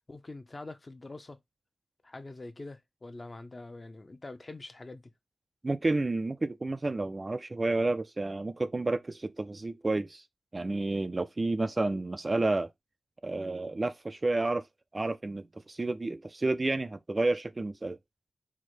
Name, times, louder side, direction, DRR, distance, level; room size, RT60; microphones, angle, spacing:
voice 1, 0.1-1.4 2.0-5.1, left 2 dB, 30° left, 0.6 m, -44 dB
voice 2, 5.6-10.2 10.5-12.7 13.2-14.6 14.9-18.0, right 2 dB, 25° right, 0.3 m, -30 dB
4.7 x 2.1 x 4.1 m
wide cardioid pair, 130°, 0 cm